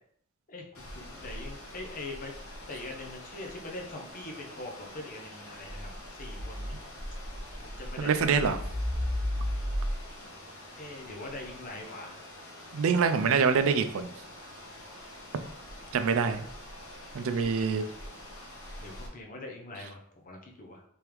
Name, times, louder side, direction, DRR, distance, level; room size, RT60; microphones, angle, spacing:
voice 1, 0.5-2.3 2.7-6.8 7.6-8.4 10.8-12.2 15.5-15.6 17.2-17.8 18.8-20.8, left 2 dB, 40° left, 1 dB, 0.7 m, -43 dB
sound 1, 0.7-19.1, left 1 dB, 80° left, 1.0 m, -39 dB
voice 2, 8.0-8.6 12.7-14.1 15.9-16.5 17.1-17.9, right 5 dB, 70° right, 10 dB, 0.4 m, -25 dB
3.5 x 3.4 x 3.0 m, 0.67 s
head